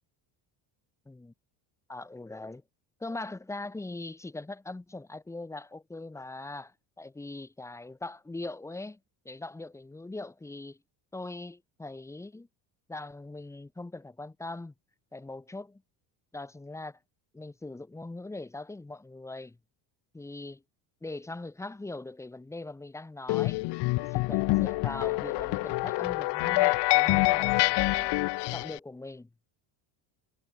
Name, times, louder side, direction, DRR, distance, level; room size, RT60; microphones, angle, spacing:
voice 1, 1.9-2.6 3.0-9.0 9.2-10.8 11.1-12.5 12.9-14.7 15.1-15.8 16.3-17.0 17.3-19.6 20.1-20.6 21.0-23.6 24.0-28.3 28.5-29.3, left 2 dB, 5° left, 1.1 m, -41 dB
sound 1, 23.3-28.8, left 22 dB, 60° left, 0.9 m, -26 dB
cardioid pair, 165°, 47 cm